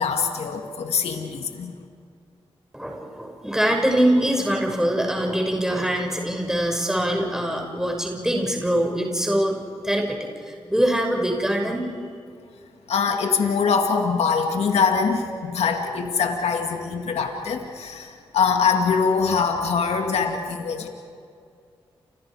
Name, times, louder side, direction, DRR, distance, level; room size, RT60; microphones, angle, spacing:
voice 1, 0.0-1.7 12.9-20.9, left 5 dB, 80° left, 3 dB, 2.3 m, -23 dB
voice 2, 2.7-9.6 9.8-11.9, right 1 dB, 5° right, 1 dB, 6.1 m, -23 dB
29.5 x 27.0 x 5.0 m, 2.2 s
supercardioid pair, 45°, 11 cm